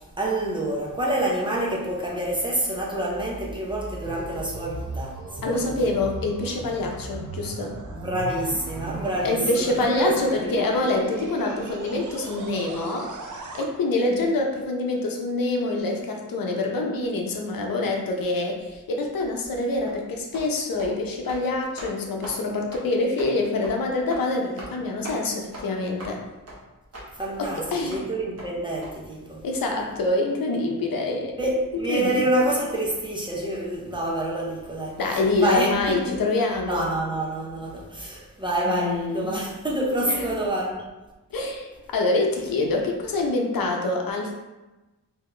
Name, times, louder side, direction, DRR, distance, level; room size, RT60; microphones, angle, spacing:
voice 1, 0.2-5.2 5.5-5.7 7.9-10.6 27.1-29.4 31.4-35.0 35.4-36.1 36.7-40.7, right 1 dB, 15° right, -4 dB, 0.6 m, -27 dB
sound 1, 3.6-13.7, right 3 dB, 60° right, 0.5 m, -37 dB
voice 2, 5.4-7.8 9.2-13.1 13.5-26.2 27.4-28.0 29.4-31.4 31.9-32.2 35.0-36.9 38.6-39.3 40.1-40.3 41.3-44.3, left 2 dB, 80° left, 1 dB, 0.7 m, -26 dB
sound 2, 19.9-20.0 20.3-20.5 20.8-20.9 21.2-21.4 21.8-21.9 22.2-22.4 22.7-22.8 23.2-23.3 23.6-23.8 24.1-24.2 24.6-24.8 25.0-25.2 25.5-25.6 26.0-26.1 26.5-26.6 26.9-27.1 27.4-27.5 27.9-28.0 28.4-28.5 28.8-28.9, right 1 dB, 45° right, 1.0 m, -39 dB
4.1 x 2.8 x 3.2 m, 1.1 s
wide cardioid pair, 155°, 34 cm